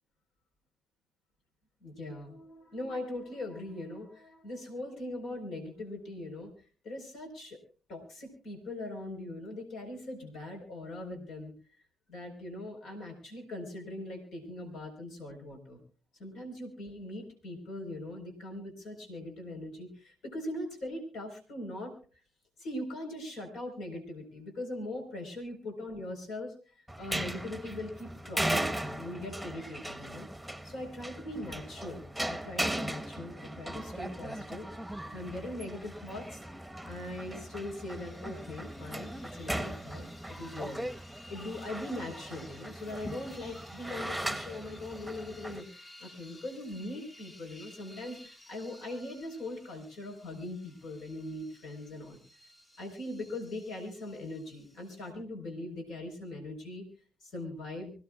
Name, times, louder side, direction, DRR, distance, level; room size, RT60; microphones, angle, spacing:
voice 1, 1.8-6.5 6.8-7.6 7.9-11.5 12.1-15.8 16.2-21.9 22.6-30.3 30.6-34.7 35.0-36.4 36.8-40.9 41.3-45.7 46.0-52.5 52.8-56.8 57.2-57.9, left 1 dB, 70° left, 3 dB, 4.3 m, -41 dB
sound 1, 26.9-45.6, right 1 dB, ahead, 1.2 m, -38 dB
sound 2, 36.9-55.1, left 1 dB, 45° left, 6.3 m, -56 dB
25.5 x 16.0 x 2.4 m, 0.38 s
hypercardioid pair, 50°, 0 cm